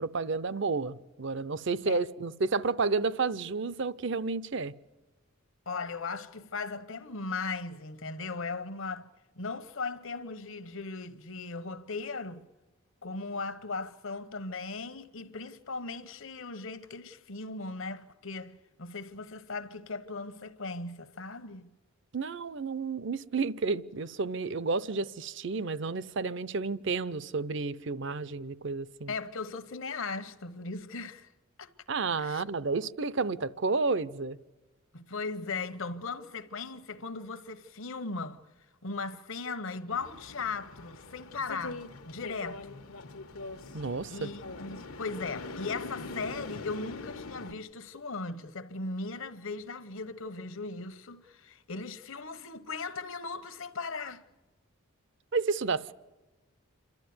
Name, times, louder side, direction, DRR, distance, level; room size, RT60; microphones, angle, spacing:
voice 1, 0.0-4.7 22.1-29.1 31.9-34.4 43.7-44.3 55.3-55.9, right 4 dB, 60° right, 0.6 m, -31 dB
voice 2, 5.7-9.1 9.4-12.4 13.0-21.7 29.1-31.3 31.6-31.7 32.2-32.4 34.9-38.4 38.8-42.8 44.1-54.2, left 4 dB, 65° left, 1.1 m, -38 dB
sound 1, 39.9-47.5, left 3 dB, 85° left, 1.3 m, -43 dB
28.5 x 13.0 x 9.5 m
head